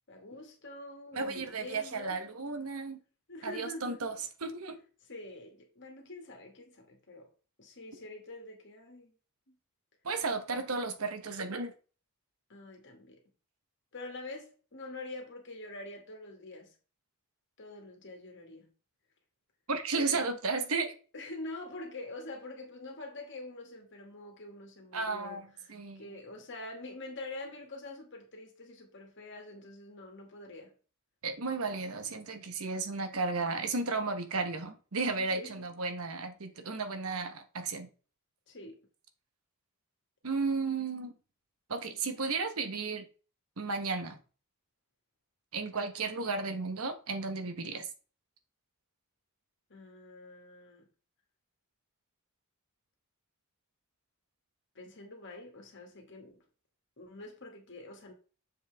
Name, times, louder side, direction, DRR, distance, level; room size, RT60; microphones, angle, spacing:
voice 1, 0.1-2.2 3.3-4.0 5.0-7.3 7.6-9.1 12.5-13.2 13.9-16.7 17.6-18.7 19.9-20.3 21.1-30.7 35.2-35.6 38.5-38.8 49.7-50.9 54.8-56.4 57.0-58.1, left 2 dB, 55° left, 2.1 m, -46 dB
voice 2, 1.1-3.0 3.4-4.1 4.4-4.8 10.0-11.7 19.7-20.9 24.9-26.0 31.2-37.9 40.2-41.1 41.7-43.0 43.6-44.2 45.5-47.9, right 4 dB, 70° right, 1.2 m, -34 dB
7.3 x 5.7 x 3.5 m
head